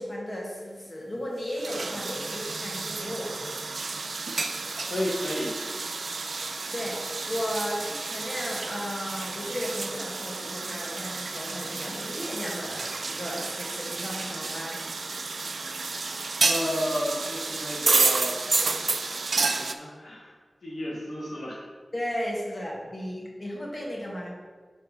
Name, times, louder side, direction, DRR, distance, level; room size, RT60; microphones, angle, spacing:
voice 1, 0.0-3.4 6.7-14.8 21.9-24.3, equal, 40° left, -3 dB, 1.9 m, -35 dB
sound 1, 1.5-19.7, right 3 dB, 75° right, 0.4 m, -30 dB
voice 2, 4.9-5.5 16.4-18.4 19.4-20.3 20.6-21.6, left 1 dB, 75° left, -4 dB, 1.3 m, -32 dB
6.1 x 4.8 x 5.0 m, 1.5 s
wide cardioid pair, 55°, 0 cm